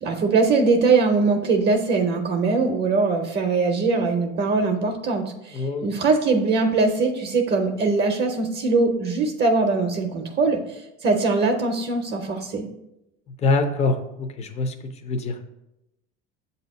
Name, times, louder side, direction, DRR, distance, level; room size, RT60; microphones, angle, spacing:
voice 1, 0.0-12.7, right 4 dB, 35° right, 4 dB, 0.6 m, -22 dB
voice 2, 5.5-5.9 13.4-14.7 15.0-15.4, left 3 dB, 20° left, 6 dB, 0.5 m, -24 dB
7.4 x 2.7 x 5.2 m, 0.89 s
cardioid pair, 135°, 30 cm